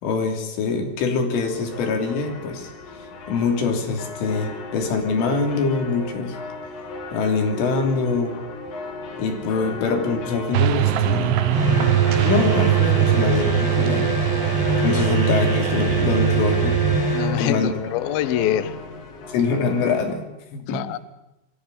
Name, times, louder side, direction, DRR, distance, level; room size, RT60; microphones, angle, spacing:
voice 1, 0.0-2.7 3.3-6.4 7.1-8.4 9.2-11.4 12.2-14.2 14.8-16.8 17.4-17.9 19.3-20.3 20.7-21.0, left 4 dB, 90° left, 4 dB, 5.6 m, -24 dB
sound 1, 1.4-20.2, left 2 dB, 50° left, 3.7 m, -37 dB
sound 2, 10.5-17.0, right 11 dB, 75° right, 2.9 m, -21 dB
sound 3, 11.5-17.4, right 2 dB, 25° left, 4.9 m, -24 dB
voice 2, 14.8-15.2 17.1-18.8 20.5-21.0, left 11 dB, 70° left, 13 dB, 2.3 m, -25 dB
23.5 x 15.0 x 10.0 m, 0.94 s
omnidirectional pair, 5.5 m